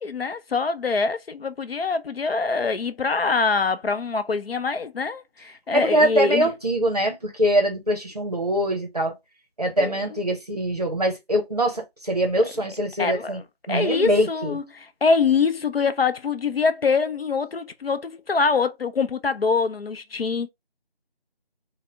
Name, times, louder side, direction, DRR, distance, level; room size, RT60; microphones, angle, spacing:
voice 1, 0.0-6.5 9.8-10.2 13.0-13.4 13.7-20.5, left 4 dB, 65° left, 0.5 m, -24 dB
voice 2, 5.7-9.1 9.6-13.4 13.7-14.6, right 1 dB, 40° right, 0.7 m, -23 dB
4.0 x 2.1 x 2.5 m
figure-of-eight pair, 170°, 31 cm